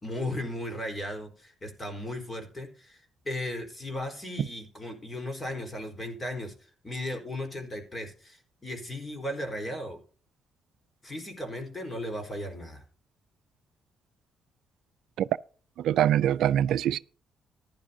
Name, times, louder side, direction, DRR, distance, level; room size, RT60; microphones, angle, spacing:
voice 1, 0.0-6.5 6.8-10.0 11.0-12.8, left 1 dB, 25° left, 4.1 m, -36 dB
voice 2, 15.8-17.0, right 11 dB, 80° right, 0.4 m, -23 dB
15.0 x 11.0 x 2.7 m
cardioid pair, 90°, 0 cm